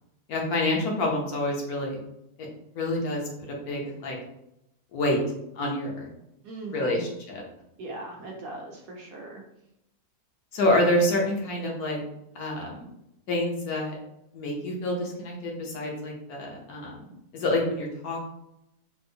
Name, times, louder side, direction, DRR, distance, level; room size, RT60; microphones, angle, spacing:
voice 1, 0.3-2.0 2.7-3.2 3.5-4.2 4.9-5.2 5.6-6.1 6.7-7.4 10.5-12.0 12.3-12.8 13.3-14.0 14.3-16.9 17.3-18.3, left 1 dB, 70° left, -1 dB, 1.2 m, -27 dB
voice 2, 6.4-7.1 7.8-9.4, right 2 dB, 65° right, -1 dB, 1.0 m, -39 dB
4.4 x 2.1 x 2.7 m, 0.82 s
omnidirectional pair, 1.8 m